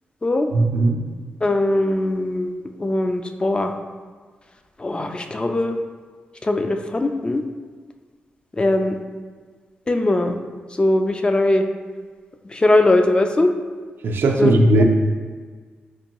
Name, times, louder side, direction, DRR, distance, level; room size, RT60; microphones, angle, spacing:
voice 1, 0.5-1.0 14.0-14.8, right 2 dB, 75° right, 2 dB, 0.4 m, -17 dB
voice 2, 1.4-3.7 4.8-5.8 6.4-7.4 8.5-9.0 9.9-10.4 10.7-11.7 12.4-13.5 14.4-14.5 14.8-14.9, left 2 dB, 25° left, 5 dB, 0.3 m, -20 dB
4.4 x 2.2 x 2.9 m, 1.5 s
cardioid pair, 65°, 4 cm